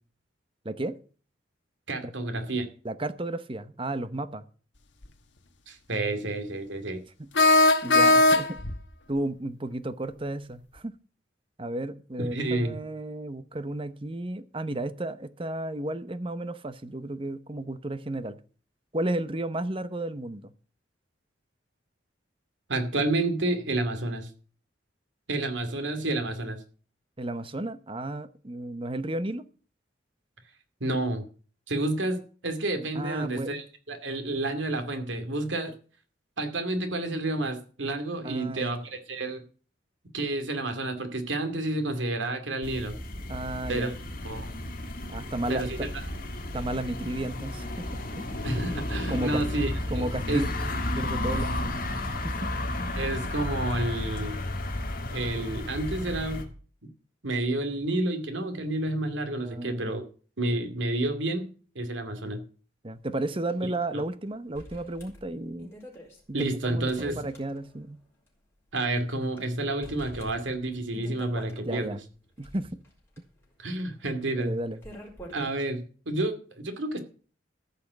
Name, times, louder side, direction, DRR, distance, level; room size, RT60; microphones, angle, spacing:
voice 1, 0.6-1.0 2.0-2.1 2.8-4.4 7.2-7.3 7.8-8.6 9.1-11.0 11.6-18.4 18.9-20.5 27.2-29.4 32.9-33.5 38.2-38.7 43.3-44.0 45.1-45.6 46.5-47.8 48.1-48.3 49.1-49.4 49.9-51.7 52.2-52.5 59.4-60.0 62.8-65.7 66.3-68.0 71.6-72.0 72.4-72.7 74.4-74.8, right 1 dB, 30° right, 0.8 m, -33 dB
voice 2, 1.9-2.7 5.7-7.0 12.2-12.8 22.7-24.3 25.3-26.6 30.8-31.2 31.7-35.7 36.4-39.4 40.1-43.0 43.7-43.9 44.2-44.5 45.5-45.9 48.4-50.4 52.9-54.4 55.1-56.4 57.2-60.0 60.4-62.4 63.9-64.0 66.3-67.2 68.7-72.0 73.6-74.6 75.3-77.0, right 2 dB, 85° right, 2.6 m, -30 dB
sound 1, 5.0-5.1 7.3-8.8, left 2 dB, 75° left, 1.3 m, -19 dB
sound 2, 42.6-56.4, left 1 dB, 50° left, 2.1 m, -33 dB
sound 3, 63.5-63.6 63.8-63.9 64.5-67.9 68.3-68.4 69.0-69.4 69.8-71.7 72.2-75.5, equal, 15° left, 4.4 m, -47 dB
14.5 x 5.7 x 8.1 m
head